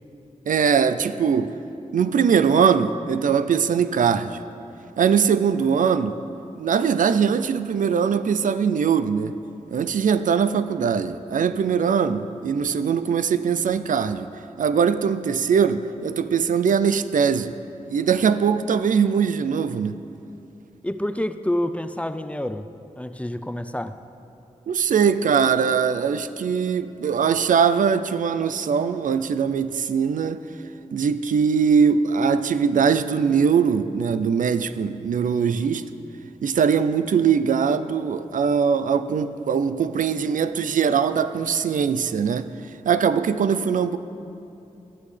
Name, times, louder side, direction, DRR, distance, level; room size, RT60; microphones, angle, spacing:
voice 1, 0.5-1.5 1.9-4.4 5.0-6.2 6.6-9.3 9.7-14.3 14.6-17.6 17.9-20.0 24.7-30.4 30.9-35.8 36.4-42.5 42.8-44.0, right 6 dB, 75° right, 12 dB, 0.4 m, -21 dB
voice 2, 20.8-22.7 23.0-24.0, left 1 dB, 10° left, 11 dB, 0.5 m, -28 dB
13.5 x 13.5 x 3.3 m, 2.8 s
cardioid pair, 50°, 14 cm